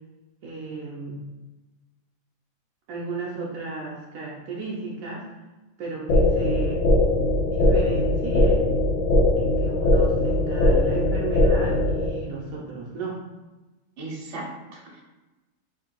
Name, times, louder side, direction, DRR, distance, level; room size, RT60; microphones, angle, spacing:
voice 1, 0.4-1.2 2.9-5.3 5.8-6.9 7.5-8.7 9.4-13.2, right 3 dB, 80° right, -3 dB, 1.1 m, -34 dB
sound 1, 6.1-12.1, left 1 dB, 85° left, 1.3 m, -20 dB
voice 2, 14.0-15.0, right 2 dB, 60° right, -2 dB, 1.2 m, -37 dB
3.3 x 2.5 x 4.4 m, 1.1 s
omnidirectional pair, 1.4 m